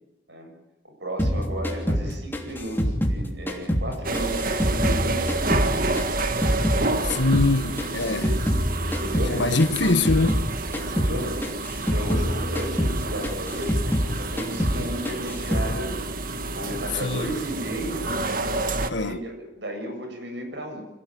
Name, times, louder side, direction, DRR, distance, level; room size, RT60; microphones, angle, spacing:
voice 1, 0.8-5.8 7.8-8.5 8.8-9.5 10.7-18.1 18.9-20.8, right 1 dB, 65° right, 7.4 m, -34 dB
sound 1, 1.2-6.8 7.1-10.5 10.7-11.1 11.4-14.1 14.4-14.8 15.0-15.7, equal, 10° left, 3.1 m, -25 dB
sound 2, 4.0-18.9, right 2 dB, 45° right, 1.6 m, -29 dB
voice 2, 7.0-8.3 9.3-10.4 17.0-17.3 18.9-19.2, left 2 dB, 70° left, 1.4 m, -23 dB
27.0 x 18.0 x 9.3 m
head